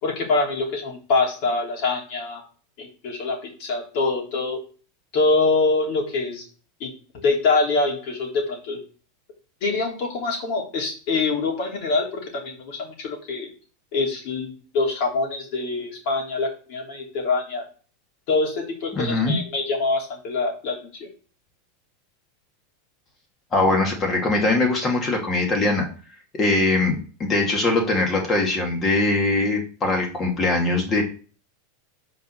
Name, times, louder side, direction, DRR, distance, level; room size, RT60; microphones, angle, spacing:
voice 1, 0.0-2.4 2.8-4.6 5.1-6.4 6.8-8.8 9.6-13.5 13.9-17.6 18.3-21.1, left 3 dB, 55° left, -1 dB, 3.3 m, -25 dB
voice 2, 18.9-19.4 23.5-25.9 26.3-31.0, left 2 dB, 25° left, 2 dB, 2.4 m, -21 dB
5.5 x 4.9 x 6.3 m, 0.39 s
supercardioid pair, 135°, 0 cm